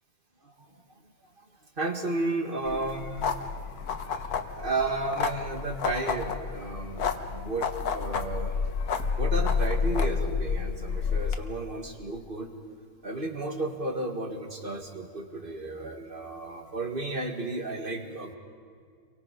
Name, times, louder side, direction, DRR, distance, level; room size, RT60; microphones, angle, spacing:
voice 1, 1.8-3.6 4.5-7.7 7.9-8.6 9.1-12.5 13.0-18.3, right 2 dB, 35° right, 3 dB, 2.1 m, -33 dB
sound 1, 2.7-11.4, left 5 dB, 80° left, 1.7 m, -30 dB
30.0 x 24.0 x 5.2 m, 2.2 s
omnidirectional pair, 1.6 m